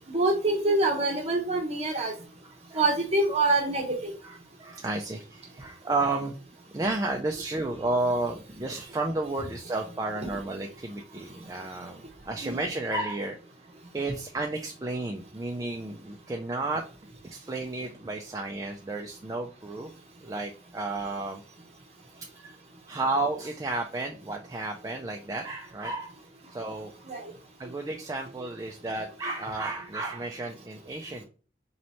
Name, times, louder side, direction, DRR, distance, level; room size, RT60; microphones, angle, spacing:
voice 1, 0.1-2.1 2.8-4.1 12.4-12.6 27.1-27.2, right 2 dB, 35° right, 1 dB, 1.0 m, -25 dB
voice 2, 4.2-6.3 6.7-13.4 13.9-16.8 17.2-19.9 20.2-21.4 22.2-22.6 22.9-26.1 26.5-26.9 27.6-31.2, right 2 dB, 20° right, 2 dB, 0.3 m, -32 dB
3.1 x 2.9 x 4.1 m, 0.37 s
head